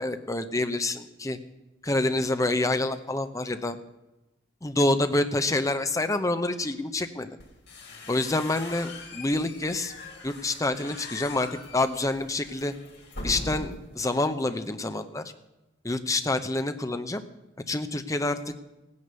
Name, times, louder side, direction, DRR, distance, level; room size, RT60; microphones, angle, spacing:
voice 1, 0.0-1.4 1.8-3.8 4.6-7.4 8.1-9.9 10.2-12.7 13.2-15.2 15.8-17.2 17.7-18.4, left 2 dB, 20° left, 9 dB, 0.8 m, -27 dB
sound 1, 7.4-14.0, left 2 dB, 60° left, 3.6 m, -41 dB
15.5 x 9.7 x 6.8 m, 0.99 s
head